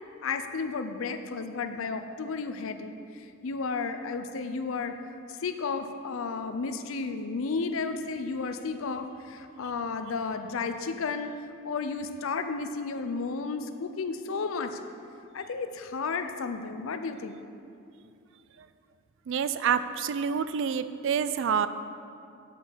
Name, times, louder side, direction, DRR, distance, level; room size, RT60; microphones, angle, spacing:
voice 1, 0.2-4.9 5.3-11.3 11.6-14.8 15.3-17.4, left 4 dB, 65° left, 8 dB, 0.5 m, -33 dB
voice 2, 19.3-21.7, right 7 dB, 60° right, 12 dB, 0.3 m, -27 dB
7.6 x 5.4 x 6.2 m, 2.5 s
head